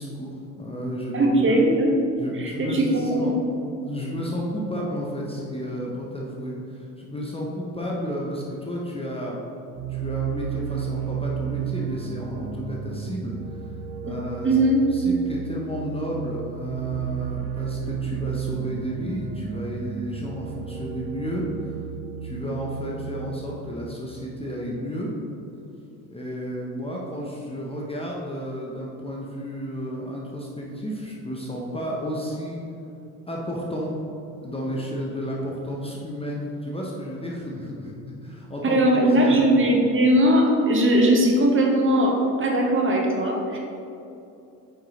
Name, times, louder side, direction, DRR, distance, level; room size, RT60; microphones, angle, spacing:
voice 1, 0.0-1.5 2.2-3.3 3.8-9.4 9.9-13.4 14.0-14.6 14.9-21.8 22.2-25.1 26.1-32.6 33.3-34.0 34.4-38.0 38.2-38.8 39.2-39.5, equal, 10° left, -3 dB, 0.9 m, -32 dB
voice 2, 1.1-2.0 2.4-3.4 14.1-14.2 14.4-14.8 38.6-43.6, right 1 dB, 25° right, 0 dB, 1.1 m, -20 dB
sound 1, 9.7-23.4, right 9 dB, 45° right, 0.6 m, -33 dB
8.8 x 4.8 x 2.9 m, 2.7 s
figure-of-eight pair, 65°, 50 cm